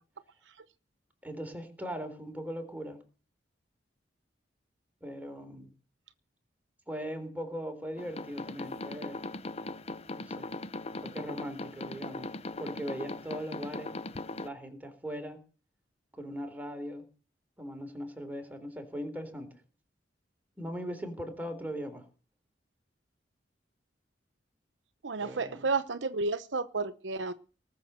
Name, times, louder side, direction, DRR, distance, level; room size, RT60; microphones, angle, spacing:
voice 1, 1.2-3.0 5.0-5.7 6.9-9.2 10.2-10.5 11.0-12.3 12.6-14.0 14.4-15.4 16.1-17.1 17.6-19.5 20.6-22.1 25.2-25.7, equal, 10° right, 3.6 m, -39 dB
sound 1, 8.0-14.5, left 2 dB, 35° left, 0.7 m, -39 dB
voice 2, 25.0-27.3, right 3 dB, 75° right, 0.9 m, -31 dB
19.0 x 7.1 x 8.1 m
head